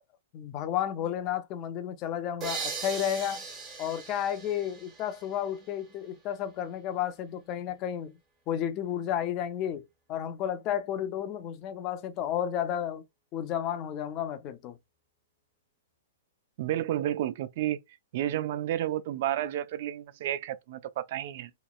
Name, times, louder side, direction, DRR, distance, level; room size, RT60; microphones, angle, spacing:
voice 1, 0.3-3.4 3.8-8.2 8.5-9.8 10.1-13.0 13.3-14.8, left 10 dB, 30° left, 0.4 m, -32 dB
sound 1, 2.4-6.0, right 5 dB, 20° right, 0.8 m, -39 dB
voice 2, 16.6-17.8 18.1-21.5, right 12 dB, 50° right, 0.3 m, -31 dB
2.9 x 2.1 x 2.3 m
hypercardioid pair, 155°, 0 cm